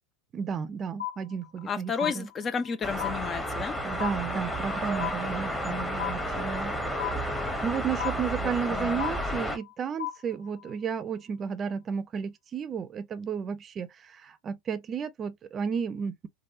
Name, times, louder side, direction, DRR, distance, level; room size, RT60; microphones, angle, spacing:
voice 1, 0.3-2.3 3.8-6.7 7.6-16.3, right 6 dB, 35° right, 0.5 m, -33 dB
sound 1, 1.0-1.7 2.0-2.7 3.0-3.7 4.0-4.7 5.0-5.7 6.0-6.7 7.0-7.7 8.0-8.7 9.0-9.7 10.0-10.7, left 13 dB, 90° left, 1.3 m, -36 dB
voice 2, 1.7-3.8 5.7-5.8 8.4-9.0, left 6 dB, 30° left, 0.5 m, -32 dB
sound 2, 2.8-9.6, equal, 5° left, 0.9 m, -32 dB
3.4 x 2.3 x 2.6 m
hypercardioid pair, 90°, 0 cm